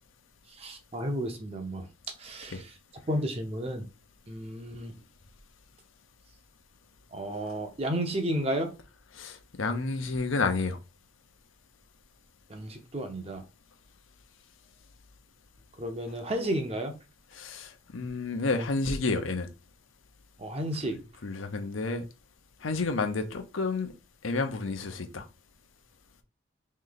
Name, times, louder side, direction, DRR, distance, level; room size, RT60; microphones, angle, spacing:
voice 1, 0.6-1.8 2.2-2.6 3.1-3.9 4.3-4.9 7.1-8.7 12.5-13.4 15.8-17.0 20.4-21.0, right 1 dB, 30° right, 0.7 m, -32 dB
voice 2, 9.1-10.8 17.3-19.5 21.2-22.1 22.6-23.9 24.2-25.2, left 3 dB, 85° left, 0.8 m, -30 dB
3.2 x 3.2 x 3.9 m
head